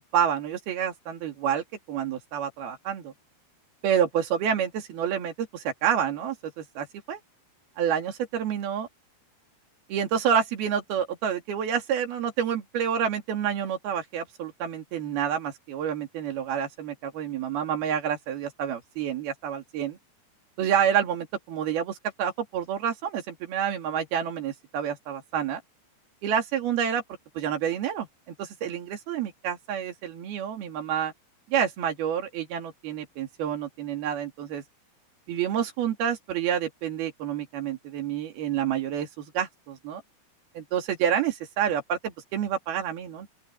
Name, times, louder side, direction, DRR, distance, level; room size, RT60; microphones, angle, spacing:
voice 1, 0.1-3.1 3.8-7.2 7.8-8.9 9.9-20.0 20.6-25.6 26.2-27.0 27.4-28.1 28.4-31.1 31.5-34.6 35.3-40.0 40.5-43.3, right 8 dB, 70° right, 4.3 m, -28 dB
open air
omnidirectional pair, 4.8 m